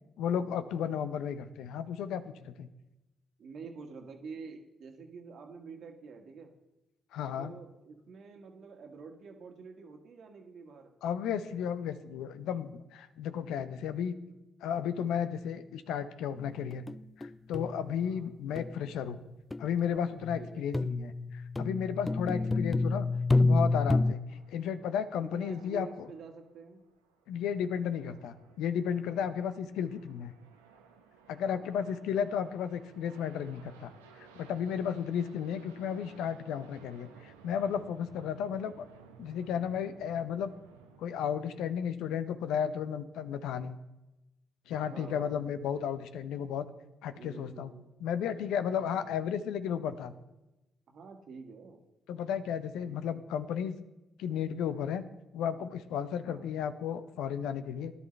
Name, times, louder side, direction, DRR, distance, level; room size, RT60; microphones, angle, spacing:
voice 1, 0.2-2.7 7.1-7.5 11.0-14.2 14.6-16.8 17.2-19.2 19.6-23.1 23.4-24.2 24.5-25.9 27.3-30.3 31.3-33.9 34.4-38.9 39.2-40.5 41.0-43.8 44.7-46.7 47.0-47.7 48.0-50.1 52.1-53.8 54.2-55.0 55.3-57.9, left 8 dB, 70° left, 12 dB, 0.7 m, -33 dB
voice 2, 3.4-6.5 7.4-10.9 14.2-14.4 17.9-18.3 20.4-20.6 22.3-22.6 25.2-26.8 31.4-31.9 35.7-36.1 44.8-45.4 47.2-47.9 48.8-49.2 50.9-51.8 52.8-53.2 56.2-56.5, right 5 dB, 60° right, 3 dB, 1.7 m, -48 dB
sound 1, 16.4-16.9 17.2-17.3 17.5-17.9 18.6-18.9 19.5-19.6 20.2-24.1, left 2 dB, 20° left, 0.4 m, -29 dB
sound 2, 24.3-41.1, right 6 dB, 85° right, 0.9 m, -58 dB
18.0 x 11.0 x 3.3 m, 0.97 s
hypercardioid pair, 45°, 0 cm